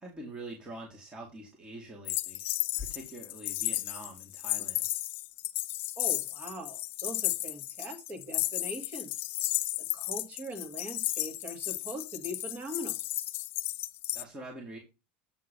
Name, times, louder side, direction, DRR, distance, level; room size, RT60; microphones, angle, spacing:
voice 1, 0.0-2.4 2.8-4.8 14.1-14.8, right 1 dB, 20° right, -1 dB, 2.2 m, -44 dB
sound 1, 2.1-14.2, left 16 dB, 50° left, 0.5 m, -34 dB
voice 2, 6.0-9.1 9.9-13.0, equal, 35° right, 4 dB, 2.5 m, -41 dB
8.2 x 3.9 x 5.3 m, 0.26 s
supercardioid pair, 125°, 5 cm